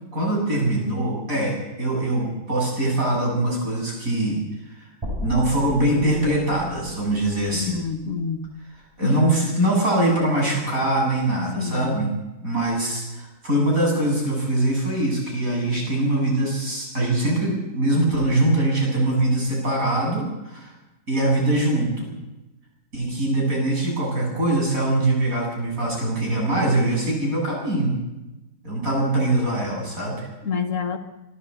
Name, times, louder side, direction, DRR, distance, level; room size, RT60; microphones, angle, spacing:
voice 1, 0.1-4.4 4.8-4.9 5.2-7.8 9.0-12.1 12.4-20.7 21.1-22.1 22.9-27.9 28.6-30.3, right 1 dB, 65° right, -1 dB, 7.8 m, -22 dB
sound 1, 5.0-9.2, left 1 dB, 15° right, 3.5 m, -37 dB
voice 2, 7.5-8.5 9.0-9.1 11.6-12.0 30.4-31.0, left 5 dB, 60° left, 6 dB, 1.6 m, -27 dB
26.0 x 12.5 x 8.1 m, 1.0 s
omnidirectional pair, 1.6 m